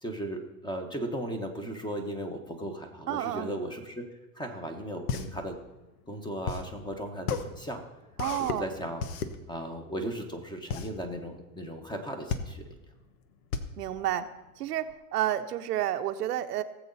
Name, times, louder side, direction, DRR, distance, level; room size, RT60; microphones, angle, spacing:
voice 1, 0.0-5.6 6.1-7.8 8.4-9.1 9.5-12.7, right 1 dB, 10° left, 5 dB, 1.4 m, -36 dB
voice 2, 3.1-3.5 8.2-8.7 13.8-14.3 14.6-16.6, right 12 dB, 90° right, 8 dB, 1.0 m, -30 dB
sound 1, 4.8-14.9, left 6 dB, 75° left, 1.3 m, -35 dB
18.0 x 7.7 x 4.1 m, 1.1 s
supercardioid pair, 130°, 45 cm